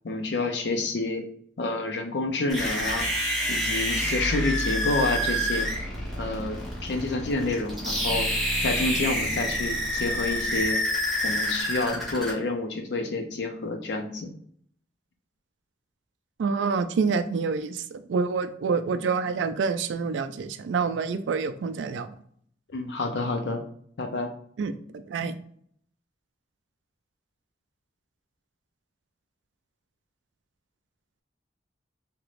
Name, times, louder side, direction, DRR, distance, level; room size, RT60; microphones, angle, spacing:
voice 1, 0.0-1.2 1.6-3.1 3.5-5.7 6.2-8.3 8.6-10.8 11.2-14.3 22.7-23.6 24.0-24.3, left 2 dB, 65° left, 4 dB, 0.5 m, -29 dB
sound 1, 2.5-12.3, equal, ahead, 0.9 m, -28 dB
voice 2, 16.4-22.1 24.6-25.4, right 5 dB, 80° right, 11 dB, 0.3 m, -27 dB
3.1 x 2.9 x 2.5 m, 0.63 s
head